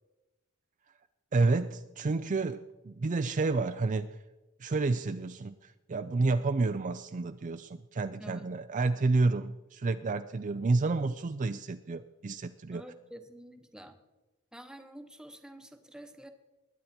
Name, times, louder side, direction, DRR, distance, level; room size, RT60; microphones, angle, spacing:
voice 1, 1.3-4.2 4.6-12.8, right 3 dB, 35° right, 10 dB, 0.4 m, -30 dB
voice 2, 8.2-8.5 12.7-14.0 14.5-16.3, right 1 dB, 5° right, 7 dB, 1.0 m, -48 dB
21.0 x 9.3 x 4.3 m, 1.1 s
head